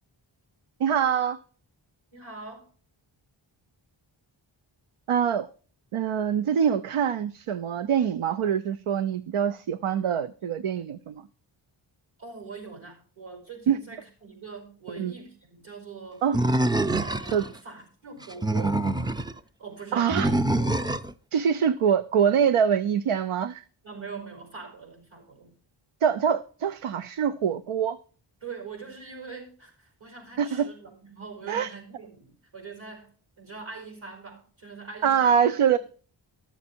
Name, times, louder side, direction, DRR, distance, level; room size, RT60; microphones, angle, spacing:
voice 1, 0.8-1.4 5.1-5.5 5.9-11.2 13.7-13.8 15.0-15.1 16.2-16.4 17.3-17.4 19.9-20.3 21.3-23.6 26.0-28.0 30.4-30.7 31.5-31.7 35.0-35.8, right 8 dB, 85° right, 0.6 m, -24 dB
voice 2, 2.1-2.6 12.2-16.2 17.0-18.9 19.6-21.0 23.8-25.5 28.4-33.1 33.4-35.3, right 4 dB, 70° right, 5.0 m, -43 dB
Animal, 16.3-17.5 18.2-19.3 20.1-21.1, right 2 dB, 10° right, 0.4 m, -25 dB
12.5 x 7.2 x 4.4 m
wide cardioid pair, 65°, 49 cm